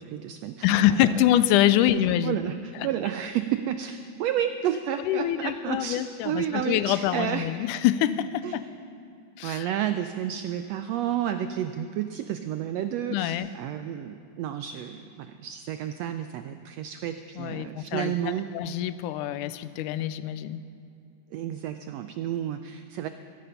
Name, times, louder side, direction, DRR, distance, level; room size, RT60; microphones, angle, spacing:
voice 1, 0.0-1.1 2.2-7.5 8.4-8.6 9.4-18.5 21.3-23.1, right 10 dB, 85° right, 9 dB, 1.4 m, -31 dB
voice 2, 0.6-2.4 2.8-2.9 5.0-8.6 9.4-9.7 13.1-13.6 17.4-18.1 18.5-20.6, left 12 dB, 85° left, 14 dB, 2.1 m, -25 dB
15.0 x 15.0 x 5.7 m, 2.7 s
omnidirectional pair, 3.5 m